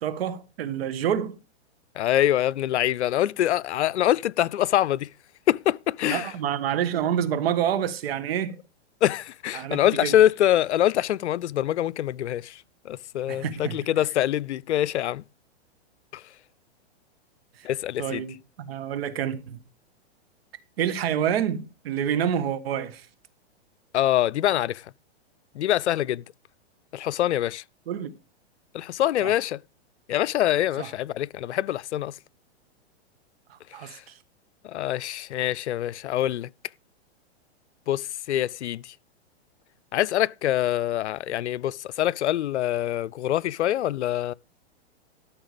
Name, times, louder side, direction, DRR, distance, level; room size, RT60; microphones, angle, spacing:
voice 1, 0.0-1.4 6.0-8.5 9.5-10.2 13.3-13.9 17.6-17.7 18.0-19.6 20.8-23.1 27.9-28.1 29.2-29.3 30.8-30.9 33.5-34.0, right 9 dB, 60° right, 1.6 m, -28 dB
voice 2, 2.0-5.1 5.5-6.3 9.0-15.2 16.1-16.2 17.6-18.2 23.9-24.8 25.5-26.2 26.9-27.6 28.7-29.6 30.1-32.2 33.8-34.0 34.6-36.5 37.9-38.9 39.9-44.3, left 12 dB, 85° left, 0.5 m, -25 dB
13.0 x 6.0 x 5.1 m
hypercardioid pair, 140°, 33 cm